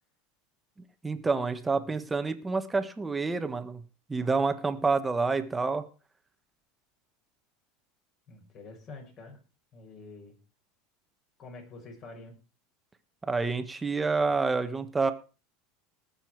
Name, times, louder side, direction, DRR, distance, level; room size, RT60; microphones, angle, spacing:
voice 1, 1.0-3.8 4.1-5.8 13.2-15.1, right 4 dB, 15° right, 9 dB, 1.4 m, -28 dB
voice 2, 1.7-2.1 8.3-9.4 9.7-10.4 11.4-12.4, left 3 dB, 40° left, 2 dB, 6.3 m, -47 dB
19.0 x 7.0 x 4.7 m, 0.34 s
supercardioid pair, 130°, 0 cm